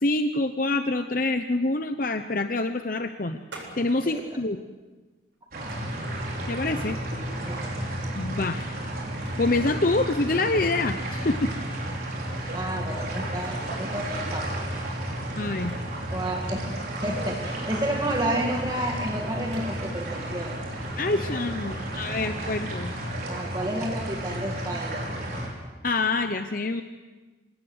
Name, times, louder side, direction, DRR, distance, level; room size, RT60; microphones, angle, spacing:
voice 1, 0.0-3.4 3.8-4.6 6.5-7.0 8.2-8.6 9.4-11.5 15.4-15.7 21.0-22.9 25.8-26.8, left 2 dB, 45° left, 8 dB, 0.8 m, -26 dB
sound 1, 3.5-4.3 5.7-6.2 7.8-8.1 8.5-8.6 9.1-9.7 10.0-10.1 11.7-11.9 12.3-12.4 13.4-14.0 15.6-16.2 18.0-18.6 19.5-20.2, right 2 dB, 80° right, 8.0 m, -47 dB
voice 2, 5.5-5.9 7.5-7.6 12.5-15.7 16.1-16.6 17.0-20.6 21.7-21.9 23.3-25.1, right 1 dB, 20° right, 0 dB, 2.2 m, -31 dB
sound 2, 5.5-25.5, right 1 dB, 50° right, 5.6 m, -32 dB
26.5 x 18.5 x 8.0 m, 1.2 s
head